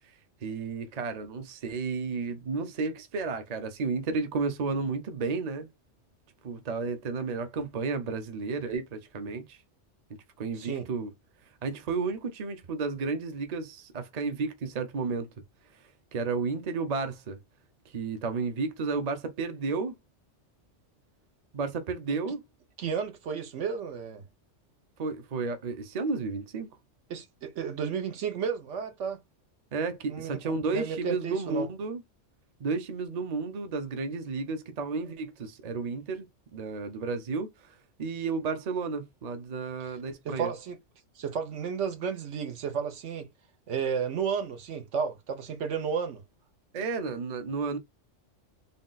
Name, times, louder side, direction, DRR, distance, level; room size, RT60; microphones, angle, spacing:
voice 1, 0.4-5.7 6.4-9.6 10.4-11.1 11.6-15.3 16.1-17.4 17.9-20.0 21.5-22.4 25.0-26.7 29.7-32.0 32.6-36.3 36.5-40.5 46.7-47.8, right 4 dB, 40° right, 0.7 m, -32 dB
voice 2, 22.8-24.2 27.1-29.2 30.1-31.7 40.2-40.8 41.2-43.3 43.7-46.2, right 6 dB, 75° right, 1.1 m, -32 dB
3.7 x 2.3 x 3.9 m
omnidirectional pair, 1.2 m